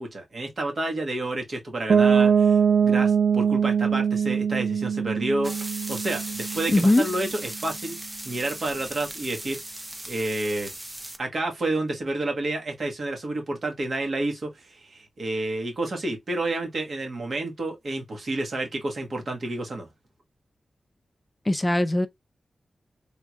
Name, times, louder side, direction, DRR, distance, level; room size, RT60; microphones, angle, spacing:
voice 1, 0.0-8.0 8.2-9.6 10.1-10.7 11.2-19.9, right 2 dB, 60° right, 1.4 m, -30 dB
Piano, 1.9-7.6, right 7 dB, 75° right, 0.3 m, -23 dB
sound 1, 5.4-11.2, right 1 dB, 20° right, 0.7 m, -37 dB
voice 2, 6.7-7.1 21.5-22.1, left 1 dB, 20° left, 0.4 m, -20 dB
3.6 x 3.1 x 2.3 m
cardioid pair, 75°, 0 cm